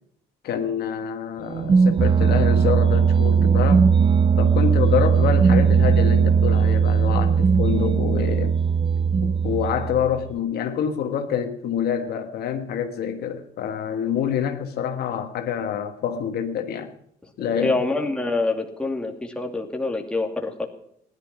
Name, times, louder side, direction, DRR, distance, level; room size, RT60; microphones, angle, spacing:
voice 1, 0.4-3.9 4.4-8.6 9.2-16.9 17.4-17.8, left 8 dB, 70° left, 1.5 m, -26 dB
sound 1, 1.5-10.3, right 6 dB, 30° right, 0.5 m, -18 dB
voice 2, 17.5-20.7, left 3 dB, 5° left, 2.3 m, -26 dB
16.0 x 11.5 x 6.0 m
cardioid pair, 110°, 17 cm